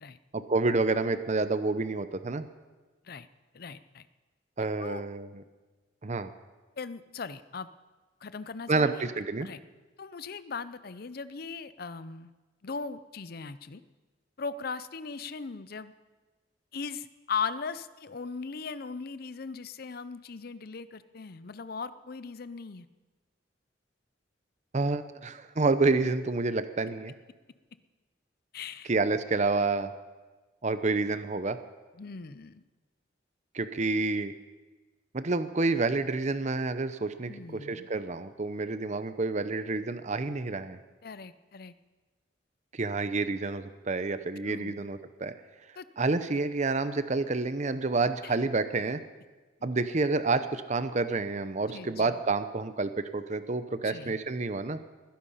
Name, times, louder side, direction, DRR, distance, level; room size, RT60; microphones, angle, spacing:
voice 1, 0.3-2.5 4.6-5.4 6.0-6.3 8.7-9.5 24.7-27.1 28.9-29.9 30.6-31.6 33.5-34.3 35.1-40.8 42.7-45.3 46.0-49.0 49.6-54.8, right 3 dB, 40° right, 11 dB, 0.7 m, -29 dB
voice 2, 3.5-4.1 4.8-5.1 6.8-7.7 8.2-9.1 9.4-9.6 10.0-12.3 12.6-13.8 14.4-15.9 16.7-22.9 28.5-28.9 32.0-32.6 37.3-37.9 41.0-41.7 44.5-44.8 45.8-45.9 48.2-48.4 51.7-52.2 53.8-54.2, left 5 dB, 55° left, 15 dB, 0.6 m, -38 dB
20.5 x 10.5 x 5.6 m, 1.3 s
head